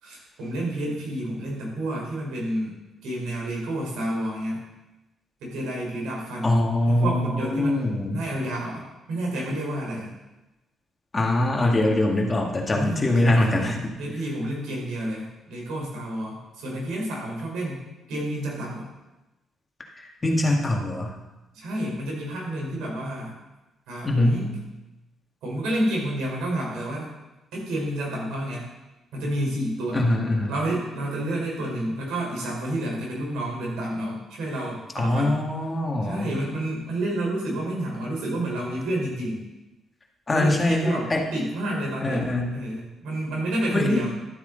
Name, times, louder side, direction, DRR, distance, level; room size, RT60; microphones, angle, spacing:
voice 1, 0.0-2.8 3.0-4.6 5.4-10.1 12.7-17.8 18.1-18.9 21.5-23.3 23.9-24.5 25.4-27.1 27.5-28.6 29.1-30.1 30.5-35.4 36.0-39.4 40.3-44.1, right 1 dB, 90° right, -2 dB, 4.3 m, -30 dB
voice 2, 6.4-8.2 11.1-14.0 20.0-21.1 24.0-24.4 29.9-30.5 35.0-36.3 40.3-41.2 42.0-42.5 43.7-44.0, left 1 dB, 25° left, 0 dB, 1.9 m, -23 dB
12.5 x 8.1 x 4.0 m, 1.0 s
cardioid pair, 90°, 0 cm